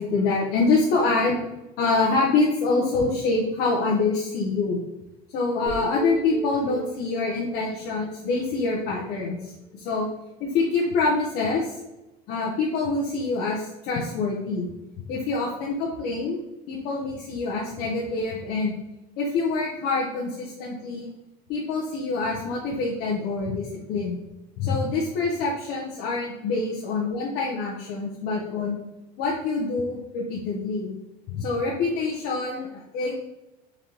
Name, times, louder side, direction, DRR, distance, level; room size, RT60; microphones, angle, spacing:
voice 1, 0.0-1.4 1.8-4.8 5.3-10.1 10.4-11.8 12.3-14.7 15.0-16.4 16.7-18.7 19.2-21.1 21.5-24.2 24.6-28.8 29.2-30.9 31.3-33.1, left 3 dB, 55° left, -4 dB, 0.8 m, -26 dB
sound 1, 5.7-9.7, right 3 dB, 45° right, 1.1 m, -37 dB
3.9 x 3.4 x 2.9 m, 0.95 s
cardioid pair, 150°, 19 cm